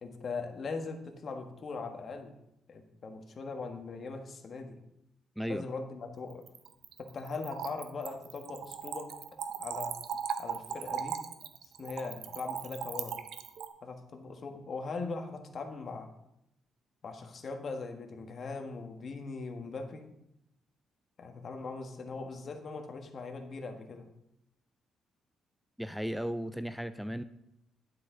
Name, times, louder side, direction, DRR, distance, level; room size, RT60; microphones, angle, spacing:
voice 1, 0.0-2.3 2.7-4.8 5.5-6.4 7.0-9.2 9.6-9.9 10.4-11.2 11.6-13.2 13.8-16.1 17.0-20.0 21.2-24.1, left 4 dB, 50° left, 5 dB, 1.5 m, -40 dB
Splash splatter / Trickle dribble, 6.3-13.7, right 7 dB, 70° right, 0.8 m, -38 dB
voice 2, 25.8-27.2, equal, ahead, 12 dB, 0.4 m, -35 dB
11.5 x 7.4 x 3.8 m, 0.85 s
cardioid pair, 90°, 0 cm